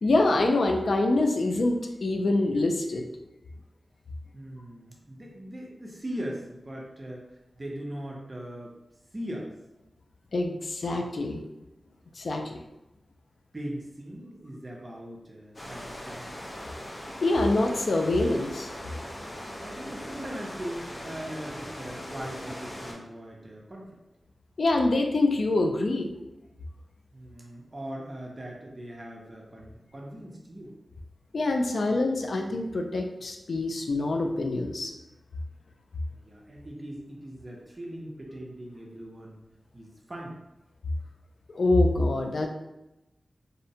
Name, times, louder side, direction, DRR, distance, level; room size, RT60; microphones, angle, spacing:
voice 1, 0.0-3.0 10.3-11.4 12.2-12.6 17.2-18.7 24.6-26.1 31.3-34.9 41.5-42.5, left 2 dB, 70° left, 3 dB, 0.3 m, -25 dB
voice 2, 4.3-8.7 9.1-9.5 12.5-12.6 13.5-16.4 19.6-24.0 27.1-30.7 36.1-39.4 39.7-40.4, right 1 dB, 30° right, -2 dB, 0.5 m, -40 dB
sound 1, 15.5-22.9, equal, 35° left, 0.6 m, -40 dB
2.6 x 2.1 x 2.7 m, 0.95 s
wide cardioid pair, 80°, 0 cm